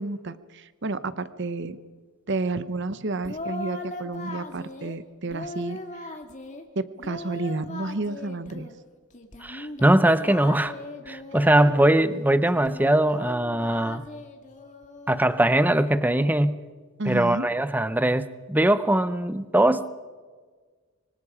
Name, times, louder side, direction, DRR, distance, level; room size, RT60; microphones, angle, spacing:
voice 1, 0.0-1.8 2.3-6.1 6.7-8.7 11.6-11.8 17.0-17.5, right 3 dB, 55° right, 13 dB, 0.9 m, -31 dB
Singing, 3.2-5.0 5.3-6.6 7.0-8.7 9.1-12.0 12.5-15.2, left 2 dB, 35° left, 2.0 m, -39 dB
voice 2, 9.4-10.7 11.1-14.0 15.1-16.6 17.1-19.9, right 1 dB, 10° right, 13 dB, 0.7 m, -21 dB
25.0 x 24.0 x 5.0 m, 1.5 s
head